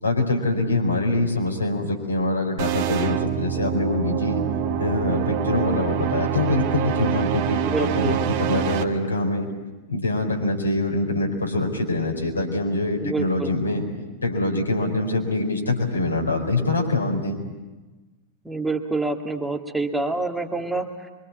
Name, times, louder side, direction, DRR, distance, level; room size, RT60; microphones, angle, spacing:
voice 1, 0.0-4.4 4.8-9.5 9.9-13.8 14.2-17.4, left 2 dB, 80° left, 0 dB, 4.7 m, -24 dB
sound 1, 2.6-8.8, right 8 dB, 45° right, 1.6 m, -25 dB
voice 2, 7.7-8.2 13.0-13.5 18.4-21.1, right 3 dB, 5° right, 2 dB, 2.0 m, -27 dB
25.0 x 24.0 x 8.5 m, 1.2 s
figure-of-eight pair, 90°, 0 cm